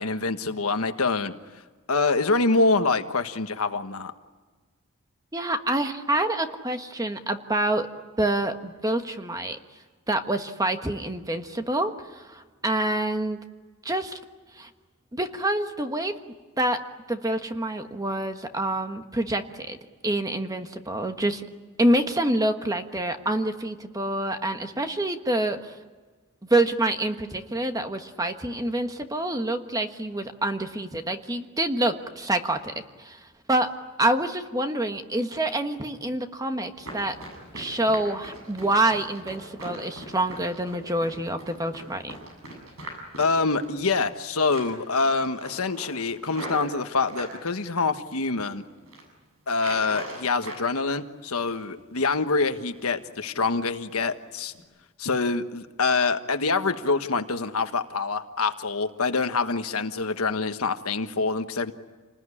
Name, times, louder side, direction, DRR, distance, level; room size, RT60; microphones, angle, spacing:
voice 1, 0.0-1.3 1.9-4.1 43.2-48.6 49.5-54.5 55.0-61.7, left 3 dB, 75° left, 8 dB, 1.4 m, -25 dB
voice 2, 5.3-7.9 8.2-9.6 10.1-13.4 13.8-14.2 14.5-14.7 15.1-16.2 16.6-16.8 17.1-19.8 20.0-21.4 21.8-25.7 26.5-33.7 34.0-37.2 37.5-42.1, right 1 dB, 15° right, 7 dB, 1.4 m, -27 dB
Run, 36.8-44.2 44.5-44.9 45.2-47.4 47.9-48.5 48.8-49.1 49.5-50.7 51.0-51.8 52.1-52.3 52.7-53.0 53.4-53.5 54.0-54.1 54.5-54.6, right 1 dB, 70° right, 7.8 m, -41 dB
28.5 x 20.0 x 9.9 m, 1.4 s
head